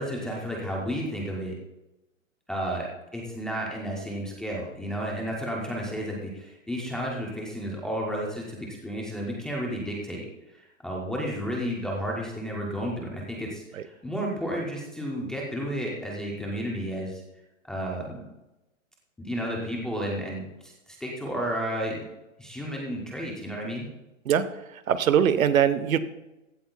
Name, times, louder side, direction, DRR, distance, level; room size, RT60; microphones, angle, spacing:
voice 1, 0.0-1.5 2.5-2.9 3.1-10.3 10.5-17.2 17.7-18.2 19.2-22.0 22.4-23.9, equal, ahead, -4 dB, 0.4 m, -32 dB
voice 2, 24.7-26.0, right 9 dB, 85° right, 13 dB, 1.0 m, -22 dB
15.5 x 12.0 x 2.2 m, 0.99 s
hypercardioid pair, 145°, 40 cm